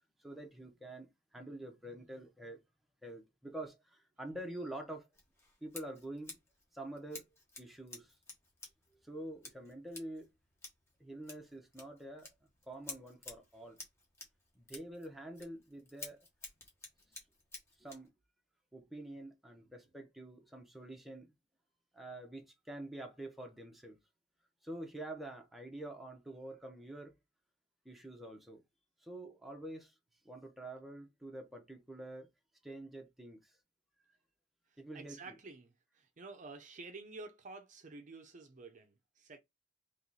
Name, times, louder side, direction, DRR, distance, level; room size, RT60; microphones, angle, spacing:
voice 1, 0.2-2.6 3.0-5.1 5.6-6.4 6.7-7.3 7.6-8.1 9.0-10.3 11.0-12.3 12.7-13.8 14.5-16.2 17.8-18.1 18.7-21.3 21.9-24.0 24.6-27.1 27.8-28.6 29.0-29.9 30.2-32.3 32.6-33.4 34.8-35.4, right 1 dB, ahead, 0.9 m, -47 dB
Scissors, 5.1-18.1, left 3 dB, 15° left, 1.3 m, -53 dB
voice 2, 34.9-39.4, right 3 dB, 45° right, 0.6 m, -50 dB
3.1 x 3.0 x 3.9 m
head